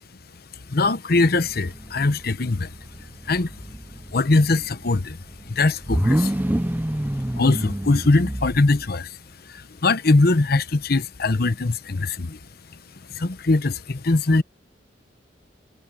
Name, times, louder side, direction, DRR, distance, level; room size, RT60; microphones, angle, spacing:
voice 1, 0.7-3.5 4.1-6.4 7.4-9.2 9.4-12.4 12.7-12.8 13.1-14.4, left 3 dB, 60° left, 0.9 m, -22 dB
sound 1, 1.1-8.9, right 1 dB, 10° right, 0.5 m, -28 dB
head